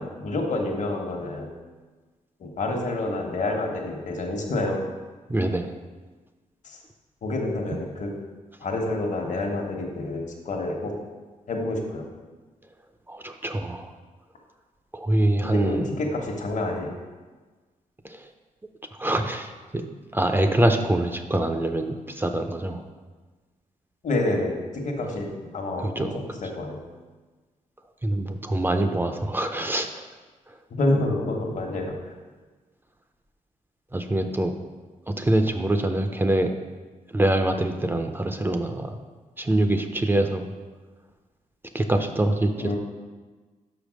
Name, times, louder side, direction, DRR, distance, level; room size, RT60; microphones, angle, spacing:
voice 1, 0.0-1.5 2.4-4.8 6.6-6.8 7.2-8.1 8.6-10.9 11.5-12.0 15.4-16.9 24.0-25.3 25.5-26.1 26.6-26.8 30.7-31.9 42.6-42.8, left 2 dB, 60° left, 1 dB, 1.2 m, -28 dB
voice 2, 5.3-5.7 13.1-13.9 14.9-15.9 18.0-18.3 19.0-19.9 20.1-22.8 25.8-26.4 28.0-30.0 30.5-30.6 33.9-34.5 35.1-36.6 37.1-39.0 39.4-40.5 41.7-42.7, right 1 dB, 15° right, 6 dB, 0.5 m, -24 dB
5.8 x 5.2 x 6.3 m, 1.3 s
cardioid pair, 110°, 14 cm